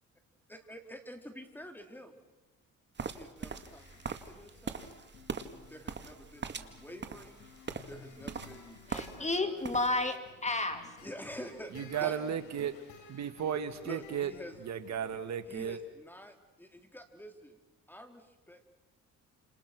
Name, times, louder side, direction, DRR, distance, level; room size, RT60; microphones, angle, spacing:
voice 1, 0.5-2.2 3.1-4.8 5.7-7.5 7.9-9.6 11.0-12.2 13.8-14.6 15.5-17.6 17.9-18.7, equal, 5° left, 5 dB, 4.2 m, -48 dB
sound 1, 3.0-9.4 9.6-10.1, right 5 dB, 35° right, 2.2 m, -41 dB
sound 2, 3.6-15.7, left 3 dB, 85° left, 7.2 m, -55 dB
voice 2, 8.9-11.1, left 2 dB, 25° left, 8 dB, 2.6 m, -32 dB
voice 3, 11.7-12.8 13.1-14.3 14.6-15.8, right 8 dB, 65° right, 10 dB, 2.0 m, -34 dB
30.0 x 28.5 x 6.2 m, 1.1 s
cardioid pair, 90°, 30 cm